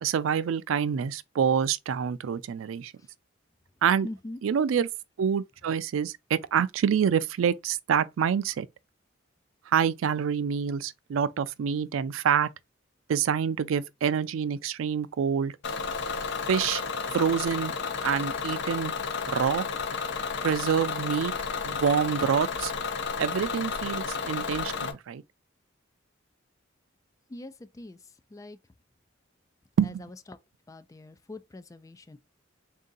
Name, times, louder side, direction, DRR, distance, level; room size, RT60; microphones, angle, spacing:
voice 1, 0.0-2.9 3.8-4.1 4.4-4.9 5.2-8.7 9.7-12.5 13.1-15.5 16.5-16.8 17.1-17.7 18.0-18.9 19.3-19.7 20.4-21.3 21.7-22.7 23.2-25.2 29.8-30.1, right 7 dB, 85° right, 0.4 m, -26 dB
voice 2, 4.0-4.4 27.3-28.0 28.3-28.6 29.9-30.4 30.7-32.2, left 2 dB, 15° left, 0.3 m, -42 dB
Bus / Engine, 15.6-24.9, left 5 dB, 65° left, 0.6 m, -32 dB
3.6 x 2.7 x 3.8 m
head